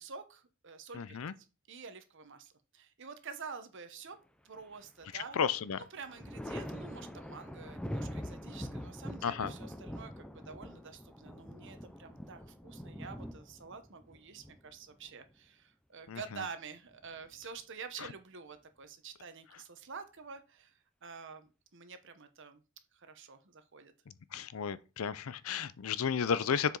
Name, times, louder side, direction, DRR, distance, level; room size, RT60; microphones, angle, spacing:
voice 1, 0.0-4.2 4.4-5.4 5.8-22.6 22.9-23.9, right 5 dB, 60° right, 0.9 m, -48 dB
voice 2, 1.0-1.3 5.4-5.8 9.2-9.5 16.1-16.2 24.3-26.8, left 7 dB, 75° left, 0.5 m, -32 dB
Thunder, 4.6-5.3 5.7-15.3 16.8-17.6, equal, 5° left, 0.5 m, -44 dB
7.0 x 4.9 x 3.9 m
head